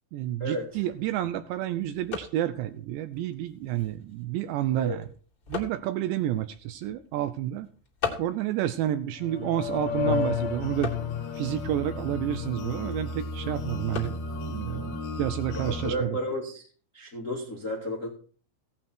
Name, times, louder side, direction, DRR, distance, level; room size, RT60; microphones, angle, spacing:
voice 1, 0.1-5.1 5.5-7.7 8.2-10.9 11.3-16.2, right 12 dB, 80° right, 12 dB, 2.6 m, -30 dB
sound 1, 0.6-16.1, left 6 dB, 30° left, 1.8 m, -42 dB
sound 2, 9.2-15.9, left 5 dB, 65° left, 2.7 m, -32 dB
voice 2, 15.5-16.6 16.9-18.1, equal, 80° left, 0 dB, 0.7 m, -32 dB
16.5 x 8.7 x 4.5 m, 0.41 s
omnidirectional pair, 5.7 m